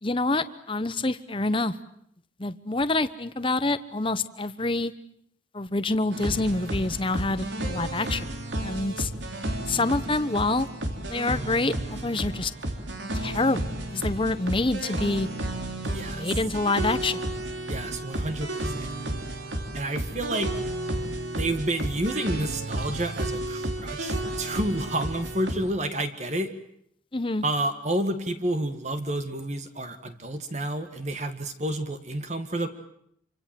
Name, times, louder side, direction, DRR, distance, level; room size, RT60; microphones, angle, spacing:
voice 1, 0.0-1.7 2.4-4.9 5.5-8.3 8.6-9.1 9.7-10.7 11.1-12.5 13.1-15.3 16.1-17.2 27.1-27.4, left 2 dB, 25° left, 12 dB, 1.0 m, -27 dB
sound 1, 6.1-25.5, right 1 dB, 75° right, 3.6 m, -32 dB
voice 2, 15.8-16.3 17.7-19.0 19.7-20.5 21.4-26.5 27.4-32.7, right 1 dB, 40° right, 7 dB, 1.8 m, -30 dB
27.0 x 25.0 x 7.7 m, 0.70 s
head